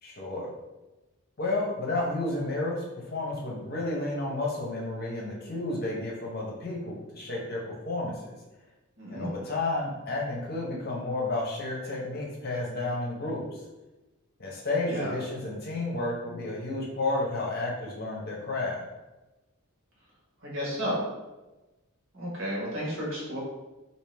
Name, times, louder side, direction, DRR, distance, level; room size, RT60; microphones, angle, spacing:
voice 1, 0.0-0.5 1.4-8.4 9.1-13.6 14.4-18.8, left 2 dB, 45° left, -3 dB, 0.7 m, -31 dB
voice 2, 9.0-9.3 14.9-15.1 20.4-21.0 22.1-23.4, equal, 65° right, -5 dB, 1.4 m, -32 dB
3.2 x 2.7 x 3.3 m, 1.1 s
head